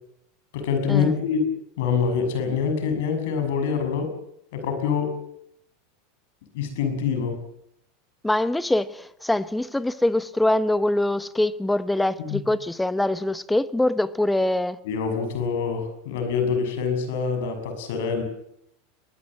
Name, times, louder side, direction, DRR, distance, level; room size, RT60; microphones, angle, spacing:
voice 1, 0.5-1.5 1.8-4.1 4.5-5.2 6.5-7.4 12.2-12.4 14.8-18.2, left 6 dB, 75° left, 7 dB, 6.6 m, -25 dB
voice 2, 8.2-14.8, left 1 dB, 5° left, 15 dB, 1.1 m, -23 dB
22.5 x 20.0 x 7.7 m, 0.76 s
hypercardioid pair, 105°, 0 cm